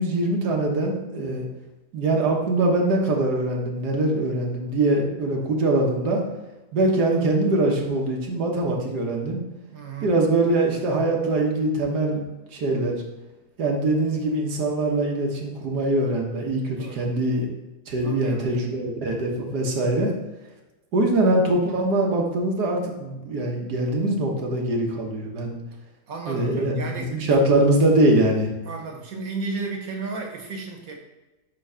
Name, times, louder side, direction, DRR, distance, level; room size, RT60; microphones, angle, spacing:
voice 1, 0.0-1.4 1.9-6.2 6.7-9.4 10.0-12.2 12.5-13.0 13.6-17.5 17.9-20.1 20.9-25.6 26.2-28.5, right 2 dB, 80° right, 0 dB, 1.8 m, -23 dB
voice 2, 9.7-10.1 16.8-17.0 18.0-18.6 26.1-27.2 28.6-31.0, right 4 dB, 65° right, 1 dB, 1.6 m, -33 dB
8.3 x 3.1 x 5.6 m, 1.1 s
omnidirectional pair, 1.7 m